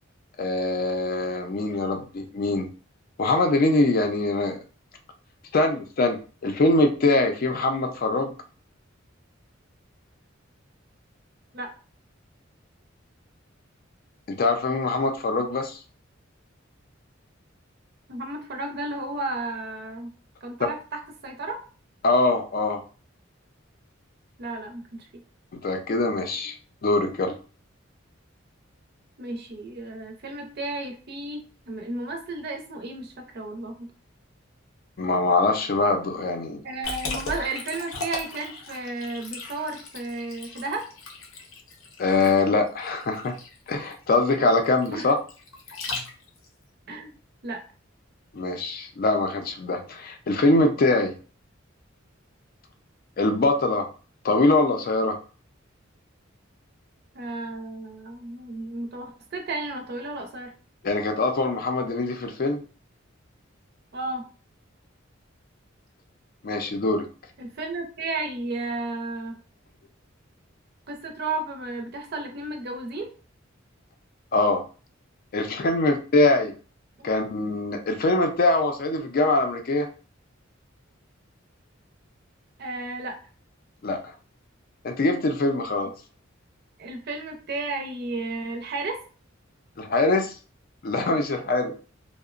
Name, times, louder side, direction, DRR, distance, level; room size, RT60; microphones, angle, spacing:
voice 1, 0.4-2.7 3.2-4.6 5.5-8.3 14.3-15.8 22.0-22.8 25.6-26.6 26.8-27.3 35.0-36.6 42.0-43.4 43.7-45.1 48.3-51.1 53.2-53.9 54.2-55.2 60.8-62.6 66.4-67.1 74.3-74.6 75.3-76.5 77.0-79.9 83.8-84.1 84.8-85.9 89.8-90.3 90.8-91.7, left 2 dB, 50° left, 5 dB, 0.4 m, -23 dB
voice 2, 18.1-20.1 20.4-21.6 24.4-25.1 29.2-33.9 36.6-40.8 44.9-45.1 46.9-47.1 47.4-47.6 57.1-60.5 63.9-64.2 67.4-69.4 70.9-73.1 77.0-77.1 82.6-83.2 86.8-89.0, right 2 dB, 55° right, 4 dB, 0.5 m, -33 dB
Liquid, 36.8-46.5, left 3 dB, 85° left, 0.7 m, -37 dB
2.8 x 2.1 x 2.4 m, 0.36 s
head